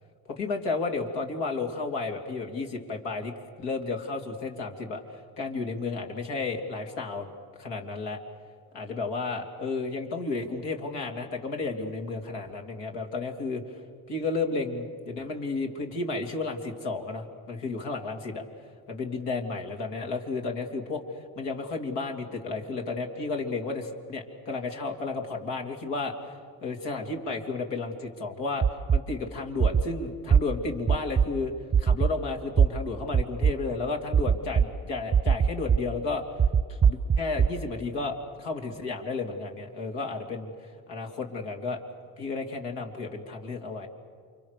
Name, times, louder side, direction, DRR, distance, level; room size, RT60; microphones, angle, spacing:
voice 1, 0.3-5.0 5.4-7.3 7.6-8.2 8.7-13.6 14.1-18.4 18.9-21.0 21.4-26.3 26.6-28.7 28.9-31.5 31.8-36.2 36.7-41.8 42.2-43.9, left 3 dB, 75° left, 3 dB, 3.1 m, -32 dB
sound 1, 28.6-29.0 29.6-29.8 30.3-30.4 30.9-31.3 31.7-32.1 32.6-32.7 33.1-33.5 34.1-34.7 35.1-35.8 36.4-37.5, right 7 dB, 25° right, 0.8 m, -20 dB
29.0 x 25.0 x 6.7 m, 2.1 s
hypercardioid pair, 55°, 43 cm